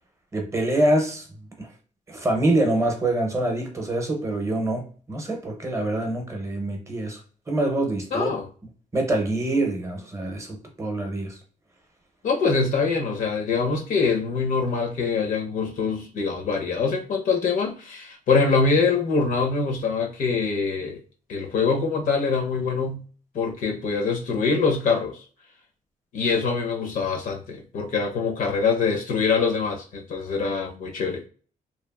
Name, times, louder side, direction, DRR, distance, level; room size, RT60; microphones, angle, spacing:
voice 1, 0.3-1.3 1.6-1.7 2.1-7.2 7.5-8.3 8.9-11.4, right 1 dB, 20° right, 0.6 m, -25 dB
voice 2, 8.1-8.5 12.2-21.0 21.3-23.0 23.3-25.2 26.1-31.3, left 4 dB, 75° left, 0.7 m, -24 dB
2.9 x 2.3 x 2.2 m
wide cardioid pair, 155°, 14 cm